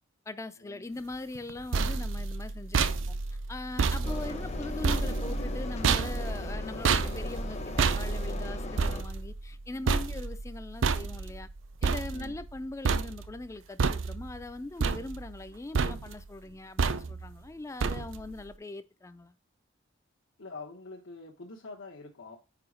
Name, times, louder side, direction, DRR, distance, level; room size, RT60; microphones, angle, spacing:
voice 1, 0.3-3.2 3.5-11.5 11.8-19.3, left 2 dB, 15° left, 0.3 m, -41 dB
sound 1, 1.4-12.6 12.8-13.5 13.8-14.4 14.8-15.5 15.7-16.3 16.8-17.3 17.8-18.3, right 4 dB, 75° right, 0.5 m, -30 dB
Engine, 4.0-9.0, left 2 dB, 35° left, 0.7 m, -37 dB
voice 2, 9.7-10.1 12.1-12.4 20.4-22.4, left 3 dB, 85° left, 1.1 m, -46 dB
4.9 x 4.8 x 4.9 m
head